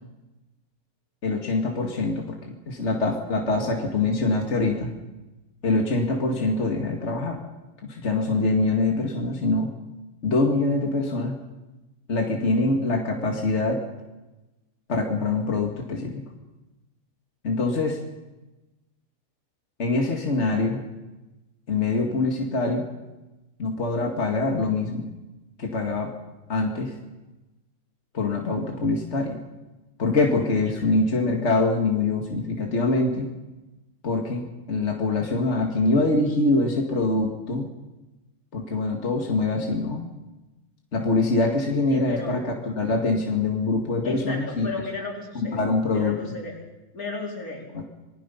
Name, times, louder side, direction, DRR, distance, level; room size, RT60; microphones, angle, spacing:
voice 1, 1.2-4.9 5.6-7.4 7.8-9.7 10.2-11.4 12.1-13.8 14.9-16.2 17.4-18.0 19.8-20.8 21.7-22.9 23.6-25.1 25.6-26.1 26.5-26.9 28.1-29.4 30.0-33.3 34.0-34.4 34.7-37.7 38.5-40.0 40.9-44.7 45.4-46.4 47.7-47.8, left 3 dB, 50° left, 2 dB, 2.3 m, -24 dB
voice 2, 41.9-42.4 44.0-46.6 46.9-47.6, left 3 dB, 90° left, -1 dB, 4.8 m, -34 dB
27.5 x 20.0 x 5.7 m, 1.1 s
omnidirectional pair, 1.5 m